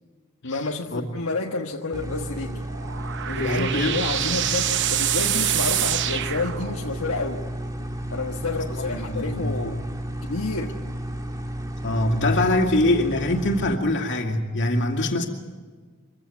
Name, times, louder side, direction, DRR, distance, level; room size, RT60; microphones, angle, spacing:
voice 1, 0.4-2.6 3.3-7.4 8.1-9.8 10.2-10.7, left 3 dB, 75° left, 0 dB, 1.4 m, -30 dB
sound 1, 1.9-13.7, equal, 15° right, 1.6 m, -32 dB
sound 2, 2.5-7.1, right 11 dB, 55° right, 0.8 m, -26 dB
voice 2, 3.3-4.3 8.7-9.6 11.8-15.3, left 1 dB, 55° left, 4 dB, 2.5 m, -24 dB
24.5 x 16.0 x 9.3 m, 1.5 s
head